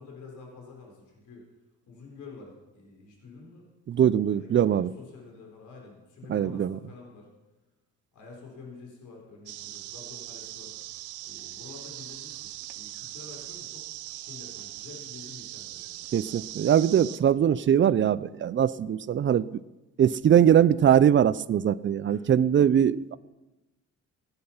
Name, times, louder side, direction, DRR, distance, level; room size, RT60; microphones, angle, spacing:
voice 1, 0.0-1.4 1.9-3.7 4.3-7.3 8.1-10.7 11.2-13.9 14.1-16.1 22.0-22.3, left 4 dB, 75° left, 0 dB, 4.0 m, -48 dB
voice 2, 3.9-4.9 6.3-6.8 16.1-19.5 20.0-23.2, right 9 dB, 40° right, 19 dB, 0.5 m, -22 dB
sound 1, 9.5-17.2, right 16 dB, 85° right, 0.6 m, -41 dB
16.0 x 9.9 x 5.7 m, 1.1 s
cardioid pair, 90°, 30 cm